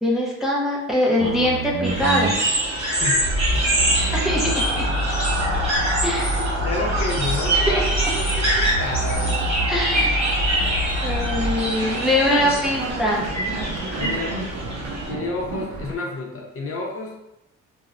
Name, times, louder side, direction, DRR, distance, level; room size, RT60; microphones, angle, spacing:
voice 1, 0.0-2.3 4.1-4.7 6.0-6.4 7.5-7.7 9.7-10.2 11.0-13.2, left 1 dB, ahead, -4 dB, 0.5 m, -22 dB
sound 1, 1.2-16.0, right 1 dB, 65° right, 0.5 m, -28 dB
sound 2, 1.8-15.1, right 1 dB, 20° right, 1.2 m, -25 dB
sound 3, 2.8-12.7, right 1 dB, 40° right, 0.9 m, -30 dB
voice 2, 6.1-9.4 14.0-14.4 15.1-17.2, left 3 dB, 50° left, -1 dB, 0.6 m, -30 dB
3.0 x 2.0 x 2.4 m, 0.88 s
cardioid pair, 90°, 30 cm